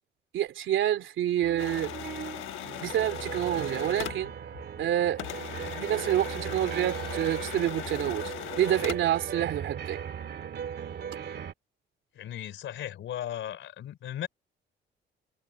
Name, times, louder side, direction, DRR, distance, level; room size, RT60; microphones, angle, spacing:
voice 1, 0.3-1.9 2.8-4.3 4.8-5.2 5.6-10.0, right 11 dB, 75° right, 2.9 m, -28 dB
sound 1, 1.4-11.5, right 8 dB, 55° right, 2.0 m, -38 dB
sound 2, 1.6-4.9 5.2-9.2, left 14 dB, 90° left, 1.3 m, -39 dB
voice 2, 12.1-14.3, left 11 dB, 75° left, 3.6 m, -37 dB
cardioid pair, 90°, 20 cm